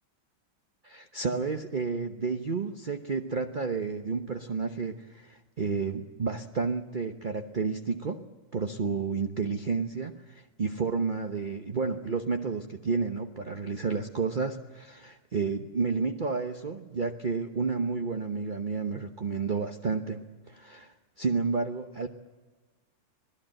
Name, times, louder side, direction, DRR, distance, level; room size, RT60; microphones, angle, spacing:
voice 1, 0.8-8.2 8.5-20.2 20.5-22.1, right 4 dB, 45° right, 5 dB, 0.6 m, -31 dB
26.5 x 18.0 x 7.7 m, 1.3 s
omnidirectional pair, 2.3 m